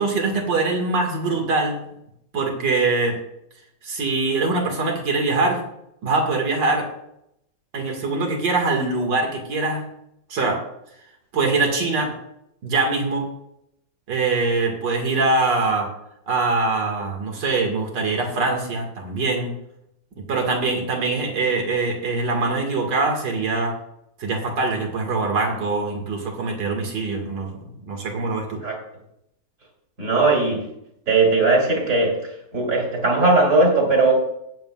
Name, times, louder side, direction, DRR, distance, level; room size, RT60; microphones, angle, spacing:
voice 1, 0.0-1.9 2.3-3.2 3.8-5.6 6.0-6.9 7.7-9.9 10.3-10.6 11.3-12.1 12.6-13.3 14.1-15.9 16.3-19.6 20.3-23.8 24.2-27.6 27.9-28.6, right 3 dB, 80° right, 1 dB, 2.5 m, -23 dB
voice 2, 30.0-30.6 31.1-32.2 32.5-34.1, right 3 dB, 50° right, -2 dB, 3.1 m, -18 dB
19.5 x 7.5 x 2.3 m, 0.80 s
omnidirectional pair, 1.9 m